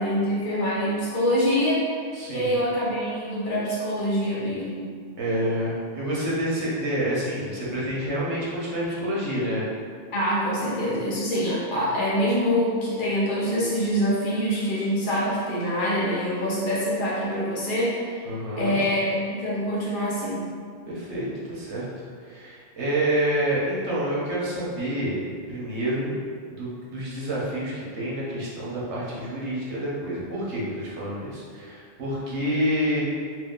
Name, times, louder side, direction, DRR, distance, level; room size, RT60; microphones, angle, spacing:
voice 1, 0.0-1.9 2.3-4.9 10.1-18.2 18.6-20.4, equal, 45° left, -7 dB, 1.0 m, -25 dB
voice 2, 2.1-2.5 5.2-9.7 18.2-18.8 20.9-21.9 22.2-25.2 25.5-26.2 26.5-33.0, right 1 dB, 75° right, -6 dB, 1.2 m, -28 dB
3.1 x 2.7 x 3.6 m, 2.1 s
omnidirectional pair, 1.2 m